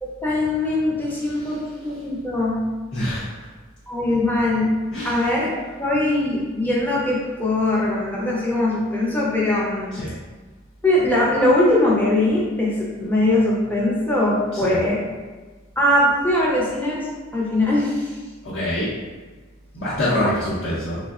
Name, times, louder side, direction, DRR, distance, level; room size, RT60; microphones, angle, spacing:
voice 1, 0.0-2.6 3.9-4.7 5.0-10.0 10.8-15.0 15.8-18.1 20.2-20.3, left 1 dB, 10° left, -5 dB, 0.5 m, -21 dB
voice 2, 2.9-3.5 4.9-5.2 9.9-10.1 14.5-14.8 18.4-18.9 19.7-21.0, left 1 dB, 60° left, -11 dB, 0.7 m, -25 dB
3.4 x 2.1 x 2.3 m, 1.3 s
head